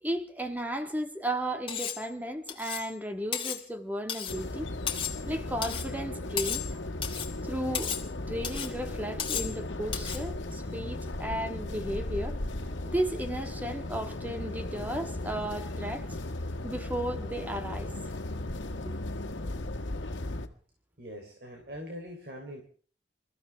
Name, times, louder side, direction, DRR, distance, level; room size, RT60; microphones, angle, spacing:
voice 1, 0.0-4.7 5.2-6.7 7.5-7.9 8.3-12.4 12.8-16.0 16.6-17.9, right 1 dB, 10° right, 6 dB, 1.7 m, -34 dB
Cutlery silverware, 1.7-2.0 2.5-2.9 3.3-3.6 4.1-4.4 4.9-5.2 5.6-5.9 6.4-6.7 7.0-7.3 7.7-8.1 8.4-8.7 9.2-9.5 9.9-10.2, left 8 dB, 30° left, 2.3 m, -34 dB
sound 1, 4.3-20.5, left 1 dB, 90° left, 1.7 m, -36 dB
voice 2, 21.0-22.6, equal, 60° right, 3 dB, 3.5 m, -42 dB
28.0 x 14.5 x 3.5 m, 0.44 s
head